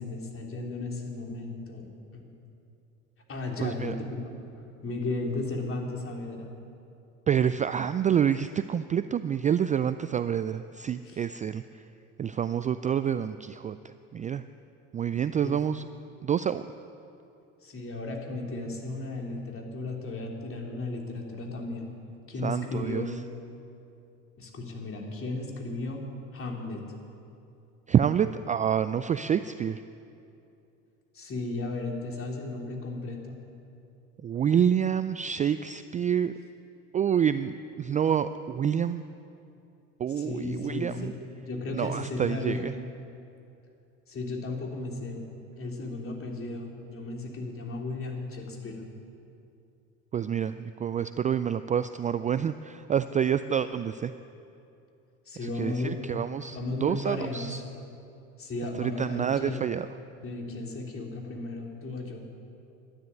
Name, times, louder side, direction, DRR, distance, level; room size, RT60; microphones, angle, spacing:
voice 1, 0.0-2.3 3.3-4.3 4.8-6.5 11.0-11.2 15.4-15.6 17.6-21.9 22.3-23.2 24.4-26.0 26.3-26.8 31.1-33.4 40.1-42.8 44.1-45.2 45.6-48.9 55.2-56.0 56.5-57.6 58.4-59.7 60.2-62.2, left 2 dB, 35° left, 1 dB, 3.2 m, -35 dB
voice 2, 3.6-3.9 7.3-11.6 12.2-14.4 14.9-15.9 16.2-16.7 22.4-23.0 27.9-29.8 34.2-36.3 36.9-39.0 40.0-41.1 41.7-42.7 50.1-54.1 55.4-57.6 58.8-59.9, right 8 dB, 20° right, 12 dB, 0.3 m, -27 dB
12.5 x 10.0 x 9.5 m, 2.7 s
hypercardioid pair, 70°, 37 cm